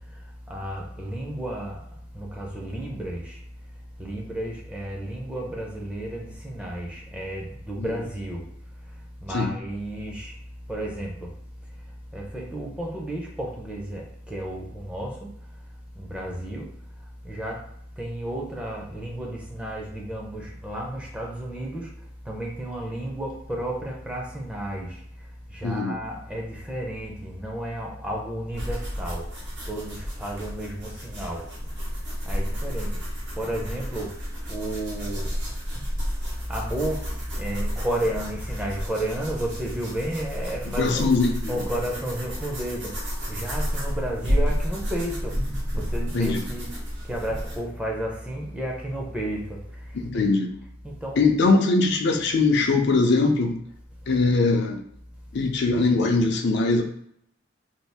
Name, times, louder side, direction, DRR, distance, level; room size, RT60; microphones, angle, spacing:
voice 1, 0.5-1.8 2.1-3.4 4.0-8.5 9.2-10.4 10.6-11.3 12.1-15.3 15.9-16.7 17.2-17.7 18.0-25.0 25.5-29.3 29.7-31.5 32.2-33.0 33.3-34.2 34.5-35.4 36.3-41.1 41.5-45.4 45.8-50.3 50.8-51.2, right 1 dB, 5° right, -1 dB, 0.6 m, -32 dB
voice 2, 25.6-26.0 40.8-41.6 46.1-46.4 49.9-50.5 51.2-53.6 54.1-54.8 55.3-56.8, left 3 dB, 60° left, 3 dB, 0.5 m, -21 dB
sound 1, 28.5-47.6, equal, 65° right, 1.1 m, -31 dB
2.7 x 2.4 x 3.4 m, 0.68 s
head